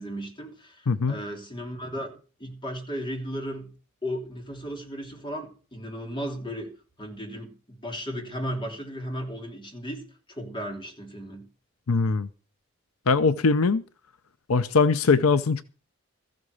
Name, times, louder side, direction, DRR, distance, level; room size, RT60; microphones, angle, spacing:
voice 1, 0.0-3.7 4.0-6.7 7.0-11.5, equal, 20° left, 3.2 m, -35 dB
voice 2, 11.9-12.3 13.1-13.8 14.5-15.6, left 4 dB, 80° left, 0.7 m, -21 dB
14.5 x 8.0 x 6.7 m
head